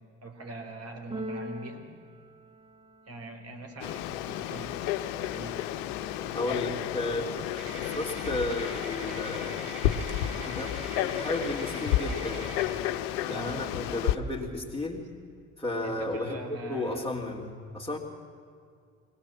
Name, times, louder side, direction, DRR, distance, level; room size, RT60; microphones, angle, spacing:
voice 1, 0.2-1.8 3.1-5.6 6.0-6.8 7.5-7.6 13.2-13.7 15.8-17.1, right 2 dB, 40° right, 4 dB, 4.1 m, -42 dB
Keyboard (musical), 1.1-3.2, right 1 dB, 15° right, 1.4 m, -41 dB
Frog, 3.8-14.2, left 12 dB, 75° left, 0.9 m, -32 dB
voice 2, 6.3-9.6 10.5-12.5 13.3-15.0 15.6-18.0, left 2 dB, 10° left, -6 dB, 3.2 m, -33 dB
sound 1, 7.5-12.7, right 2 dB, 90° right, 6.1 m, -43 dB
22.0 x 19.0 x 7.4 m, 2.3 s
hypercardioid pair, 50°, 37 cm